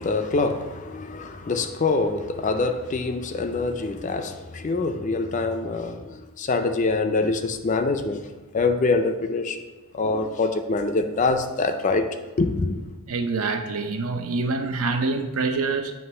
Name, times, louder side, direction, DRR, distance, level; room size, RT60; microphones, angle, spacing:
voice 1, 0.0-8.2 8.5-9.6 9.9-12.1 12.4-12.8, left 3 dB, 35° left, 0.4 m, -25 dB
voice 2, 13.1-15.9, right 3 dB, 75° right, 0.6 m, -26 dB
7.8 x 3.0 x 5.5 m
head